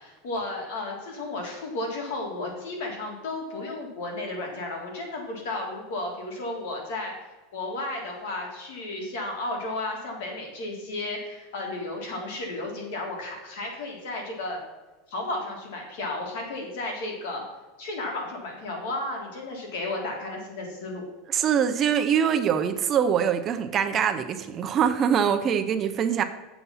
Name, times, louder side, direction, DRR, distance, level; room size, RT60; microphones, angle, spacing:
voice 1, 0.0-7.1 7.5-14.6 15.1-17.4 17.8-21.0, left 2 dB, 75° left, 1 dB, 3.4 m, -33 dB
voice 2, 21.3-26.2, right 8 dB, 25° right, 7 dB, 0.6 m, -23 dB
8.3 x 7.1 x 5.5 m, 1.2 s
supercardioid pair, 175°, 0 cm